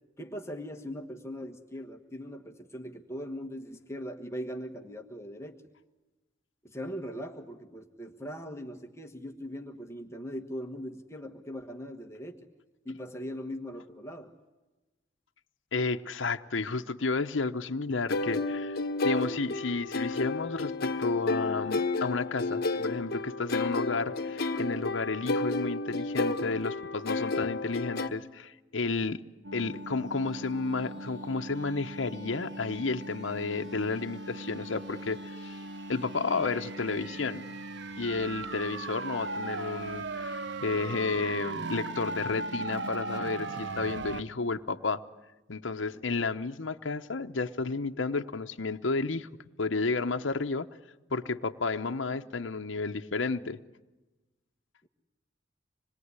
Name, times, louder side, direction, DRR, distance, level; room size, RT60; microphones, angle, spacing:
voice 1, 0.2-5.6 6.6-12.5 12.8-14.3 38.4-38.5 45.6-46.0 54.8-54.9, equal, 15° left, 3 dB, 1.4 m, -40 dB
voice 2, 15.7-18.8 19.0-29.2 29.5-35.6 35.9-37.4 38.0-45.0 45.5-49.3 49.6-50.7 51.1-53.6, left 3 dB, 75° left, 6 dB, 0.9 m, -32 dB
sound 1, 18.1-28.1, left 3 dB, 55° left, 1.3 m, -31 dB
sound 2, 29.4-44.2, right 2 dB, 65° right, 1.1 m, -38 dB
26.0 x 21.5 x 9.7 m, 1.1 s
head